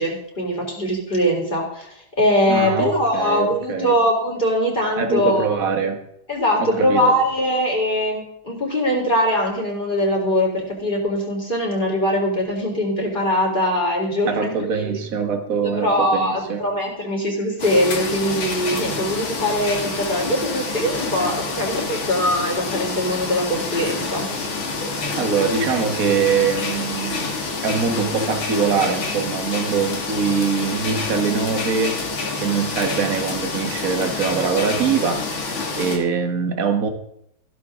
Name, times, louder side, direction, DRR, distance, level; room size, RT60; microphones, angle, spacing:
voice 1, 0.0-1.9 2.2-5.6 6.3-15.0 15.6-24.3, equal, 20° left, -1 dB, 4.1 m, -22 dB
voice 2, 2.5-4.0 5.0-6.0 6.6-7.2 14.3-16.6 25.2-32.0 32.4-36.9, right 5 dB, 45° right, 6 dB, 1.8 m, -23 dB
sound 1, 17.6-36.0, left 3 dB, 75° left, 2.8 m, -27 dB
15.5 x 12.5 x 3.8 m, 0.76 s
omnidirectional pair, 2.2 m